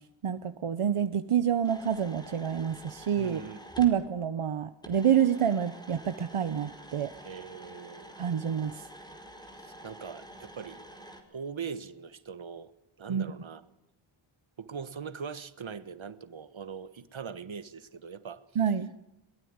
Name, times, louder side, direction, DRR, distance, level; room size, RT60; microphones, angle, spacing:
voice 1, 0.2-3.4 3.8-7.1 8.2-8.9 13.1-13.3 18.6-18.9, right 8 dB, 85° right, 10 dB, 1.0 m, -27 dB
sound 1, 1.6-4.0 4.8-11.2, equal, 10° left, 4.7 m, -48 dB
voice 2, 3.2-3.9 7.2-8.1 9.5-10.8 11.3-12.7 13.0-13.6 14.6-18.4, right 6 dB, 70° right, 13 dB, 1.5 m, -41 dB
22.5 x 21.0 x 9.6 m, 0.89 s
wide cardioid pair, 100°, 49 cm